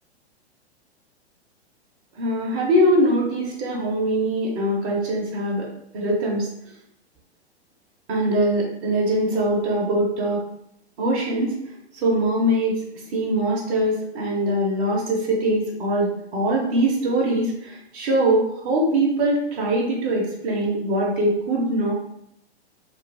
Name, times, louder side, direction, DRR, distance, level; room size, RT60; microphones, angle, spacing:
voice 1, 2.2-5.7 5.9-6.5 8.1-10.4 11.0-11.5 12.0-12.8 13.1-21.9, right 1 dB, 35° right, -4 dB, 0.8 m, -22 dB
2.6 x 2.3 x 3.2 m, 0.78 s
figure-of-eight pair, 110°, 33 cm